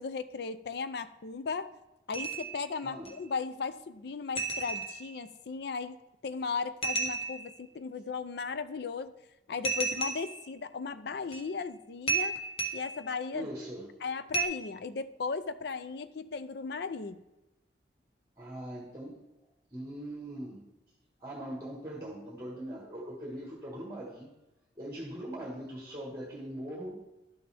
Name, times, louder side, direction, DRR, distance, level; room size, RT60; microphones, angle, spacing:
voice 1, 0.0-1.7 2.1-6.0 6.2-9.1 9.5-12.4 12.7-13.5 14.0-17.2, left 5 dB, 60° left, 13 dB, 0.5 m, -36 dB
sound 1, 2.1-2.6 3.1-3.2 4.4-5.2 6.8-7.6 9.6-10.4 11.3-11.5 12.1-13.0 14.3-14.4, right 4 dB, 35° left, 1.0 m, -33 dB
voice 2, 2.8-3.1 13.3-14.0 18.4-19.2 19.7-20.7 21.2-24.3 24.7-27.0, right 1 dB, 15° right, -3 dB, 1.5 m, -41 dB
11.5 x 6.1 x 3.4 m, 0.97 s
head